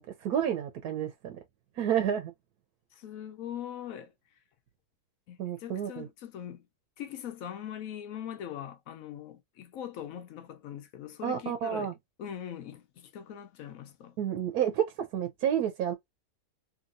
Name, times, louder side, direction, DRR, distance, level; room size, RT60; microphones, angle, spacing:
voice 1, 0.0-1.4 1.8-2.3 5.4-6.1 11.2-11.9 14.2-14.9 15.1-15.9, right 9 dB, 75° right, 1.1 m, -30 dB
voice 2, 2.9-4.1 5.3-6.6 7.0-11.9 12.2-14.2, left 10 dB, 65° left, 1.1 m, -41 dB
2.9 x 2.8 x 2.5 m
omnidirectional pair, 1.6 m